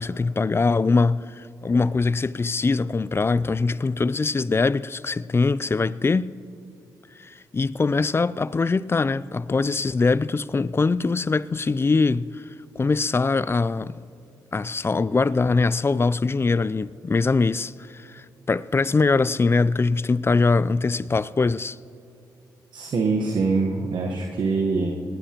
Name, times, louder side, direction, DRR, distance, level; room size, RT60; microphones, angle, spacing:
voice 1, 0.0-6.4 7.2-12.3 12.8-14.0 14.5-21.8, left 4 dB, 30° left, 0.4 m, -22 dB
voice 2, 22.7-24.9, right 4 dB, 65° right, 1.2 m, -24 dB
19.5 x 18.0 x 3.0 m
supercardioid pair, 50°, 8 cm